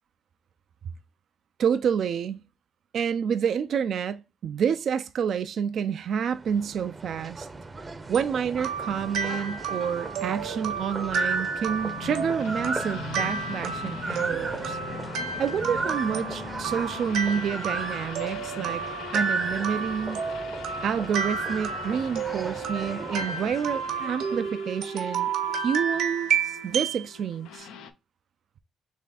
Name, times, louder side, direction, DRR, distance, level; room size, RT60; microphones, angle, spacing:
voice 1, 1.6-2.4 2.9-7.5 8.1-14.8 15.4-18.8 19.1-20.2 20.8-25.3 25.5-27.7, right 7 dB, 65° right, 0.4 m, -28 dB
sound 1, 6.1-24.5, right 3 dB, 25° right, 0.6 m, -37 dB
sound 2, 8.1-27.0, right 6 dB, 80° right, 1.1 m, -31 dB
sound 3, 11.7-27.9, left 7 dB, 90° left, 0.6 m, -41 dB
3.6 x 3.2 x 4.1 m
cardioid pair, 90°, 0 cm